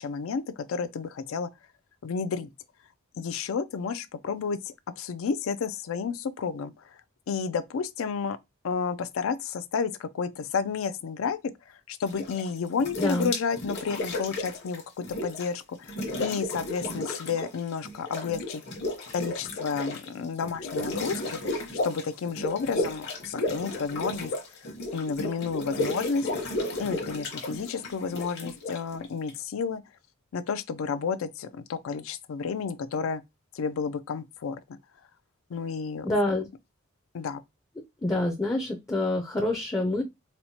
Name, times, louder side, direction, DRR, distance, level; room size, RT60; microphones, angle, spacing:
voice 1, 0.0-1.5 2.0-2.5 3.2-6.7 7.3-8.4 8.6-11.4 11.9-18.6 19.1-21.4 21.8-24.3 24.9-26.3 26.8-29.8 30.3-33.2 33.5-34.6 35.5-36.2 37.1-37.4, left 5 dB, 80° left, 0.4 m, -31 dB
sound 1, 12.1-12.5 12.8-15.6 15.8-17.6 17.8-29.4, left 2 dB, 55° left, 1.0 m, -33 dB
voice 2, 13.0-13.3 36.0-36.5 38.0-40.0, left 1 dB, 15° left, 0.4 m, -26 dB
4.3 x 2.1 x 2.7 m
head